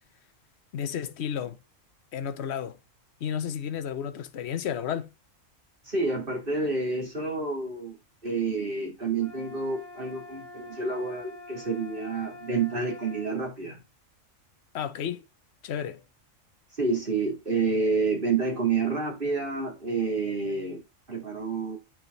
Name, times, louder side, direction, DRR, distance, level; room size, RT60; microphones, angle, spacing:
voice 1, 0.7-1.6 2.1-2.8 3.2-5.1 14.7-15.2 15.6-16.0, left 8 dB, 60° left, 1.1 m, -32 dB
voice 2, 5.8-13.8 16.8-20.8 21.1-21.8, right 4 dB, 40° right, 3.2 m, -29 dB
sound 1, 9.2-13.3, left 2 dB, 75° right, 2.9 m, -45 dB
8.8 x 4.8 x 3.9 m
omnidirectional pair, 1.3 m